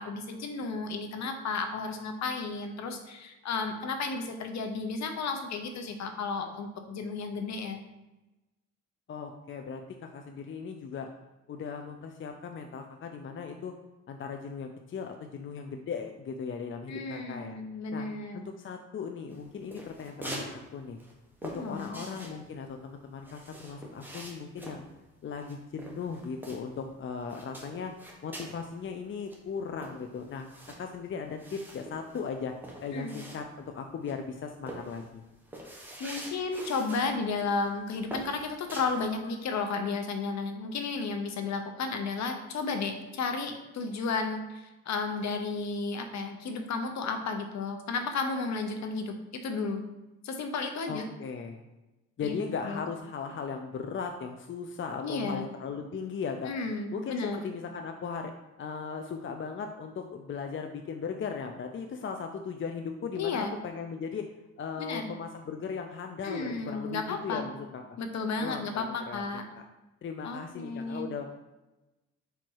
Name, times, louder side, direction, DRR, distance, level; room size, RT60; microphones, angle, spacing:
voice 1, 0.0-7.8 16.9-18.4 21.5-22.0 32.9-33.2 36.0-49.8 50.2-51.1 52.2-52.3 52.6-52.9 55.0-55.5 56.5-57.4 63.1-63.5 64.8-65.1 66.2-67.4 68.0-69.5 70.2-71.1, left 4 dB, 65° left, 6 dB, 1.0 m, -33 dB
voice 2, 9.1-11.1 11.5-13.7 14.1-17.6 17.9-18.1 18.3-21.0 21.4-24.8 25.2-27.9 28.2-30.5 30.8-32.5 32.8-35.2 50.9-51.6 52.2-56.5 56.9-64.3 64.6-68.0 68.4-69.7 70.0-71.4, left 5 dB, 40° left, 5 dB, 0.6 m, -38 dB
sound 1, 19.3-20.5 20.8-26.9 27.2-28.6 29.0-29.1 29.3-33.7 34.1-34.3 34.7-37.1 37.5-37.7 38.1-39.1, right 1 dB, 5° right, 1.6 m, -44 dB
5.1 x 4.6 x 4.7 m, 1.0 s
cardioid pair, 90°, 30 cm